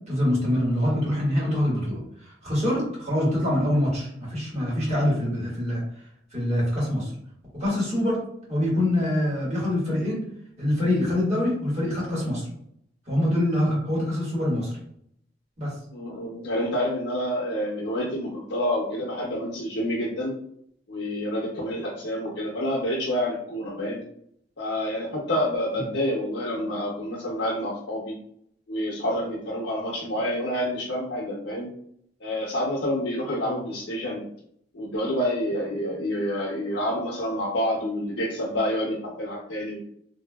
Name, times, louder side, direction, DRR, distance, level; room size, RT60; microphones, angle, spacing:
voice 1, 0.1-2.0 2.4-5.8 6.3-7.1 7.5-8.2 8.5-10.2 10.6-12.5 13.1-14.7 15.6-15.7, left 1 dB, 40° right, -6 dB, 1.5 m, -24 dB
voice 2, 15.9-20.3 20.9-24.0 24.6-28.2 28.7-31.7 32.2-34.2 34.7-39.9, equal, 75° left, -5 dB, 0.6 m, -28 dB
2.6 x 2.6 x 2.3 m, 0.70 s
head